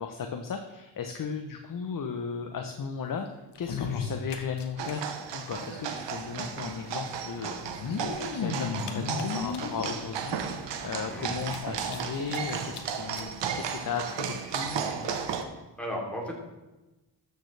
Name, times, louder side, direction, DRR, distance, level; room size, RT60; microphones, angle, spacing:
voice 1, 0.0-5.0 5.3-15.2, left 6 dB, 50° left, 5 dB, 0.8 m, -36 dB
sound 1, 3.5-4.9 5.2-5.3 5.5-5.6 6.6-6.7 7.6-9.9 10.5-10.6 10.9-11.0 11.4-12.4 12.7-12.8 13.1-13.3 14.1-14.2, left 5 dB, 70° left, 1.1 m, -34 dB
sound 2, 4.8-15.4, right 7 dB, 85° right, 0.9 m, -34 dB
voice 2, 11.1-11.4 15.8-16.3, equal, 5° left, -2 dB, 2.9 m, -35 dB
13.0 x 6.6 x 3.3 m, 1.1 s
cardioid pair, 65°, 42 cm